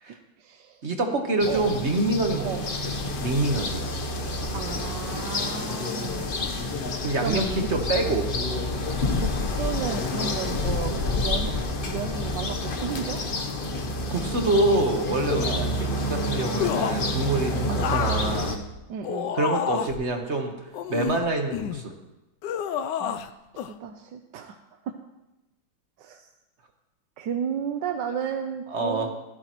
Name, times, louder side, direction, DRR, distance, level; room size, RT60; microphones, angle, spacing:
voice 1, 0.1-0.8 1.5-1.8 2.4-2.7 4.5-6.3 7.2-7.5 7.7-7.8 9.1-11.6 11.9-13.5 15.4-15.7 17.7-18.0 18.9-19.4 23.0-24.6 24.8-24.9 26.0-26.3 27.2-29.1, right 7 dB, 70° right, 5 dB, 1.3 m, -33 dB
voice 2, 0.8-2.7 3.2-3.8 7.0-8.3 14.1-18.5 19.3-20.5 20.9-21.9 28.7-29.1, right 2 dB, 40° right, 3 dB, 1.3 m, -26 dB
sound 1, 1.4-18.6, left 2 dB, 40° left, 0.7 m, -28 dB
sound 2, 10.0-13.1, right 5 dB, 20° right, 2.5 m, -47 dB
sound 3, 16.6-17.1 17.8-20.1 20.7-21.8 22.4-23.3 23.6-23.7, left 9 dB, 70° left, 1.1 m, -29 dB
16.5 x 13.0 x 3.0 m, 0.99 s
omnidirectional pair, 2.1 m